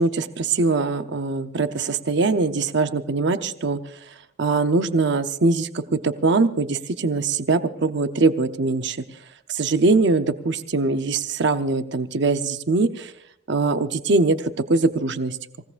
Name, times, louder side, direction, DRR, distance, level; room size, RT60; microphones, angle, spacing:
voice 1, 0.0-9.0 9.5-13.1 13.5-15.4, right 3 dB, 65° right, 9 dB, 0.7 m, -22 dB
27.0 x 17.0 x 2.5 m, 0.72 s
head